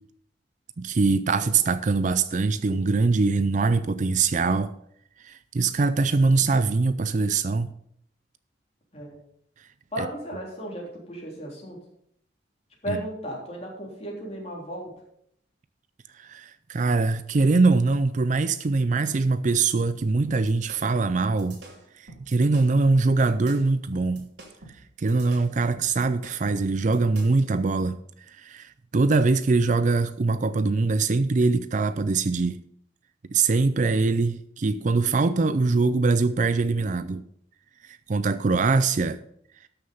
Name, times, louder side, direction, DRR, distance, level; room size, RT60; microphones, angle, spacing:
voice 1, 0.8-4.7 5.2-7.7 10.0-10.1 12.9-13.0 16.2-21.6 22.0-24.3 25.0-28.0 28.3-32.6 33.3-37.2 38.1-39.2, right 3 dB, 40° right, 0.4 m, -23 dB
voice 2, 9.9-11.8 12.8-14.9, equal, 35° left, 3.5 m, -35 dB
sound 1, 20.2-27.5, right 2 dB, 70° right, 2.9 m, -47 dB
12.5 x 6.7 x 5.4 m
head